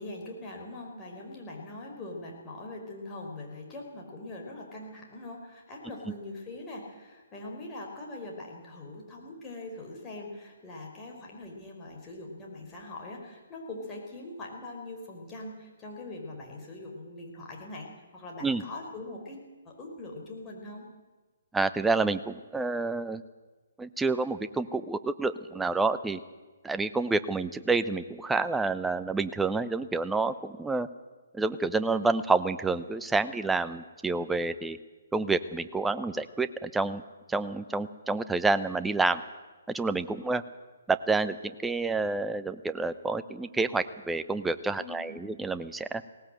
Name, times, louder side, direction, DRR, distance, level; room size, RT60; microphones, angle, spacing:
voice 1, 0.0-19.4 19.6-20.9 44.8-45.2, left 2 dB, 20° left, 0 dB, 5.0 m, -42 dB
voice 2, 21.5-23.2 23.8-26.2 26.6-30.9 31.3-34.8 35.1-37.0 37.3-39.2 39.7-40.4 40.9-46.0, right 3 dB, 5° right, 12 dB, 0.7 m, -28 dB
19.0 x 19.0 x 7.9 m, 1.3 s
figure-of-eight pair, 135°, 0 cm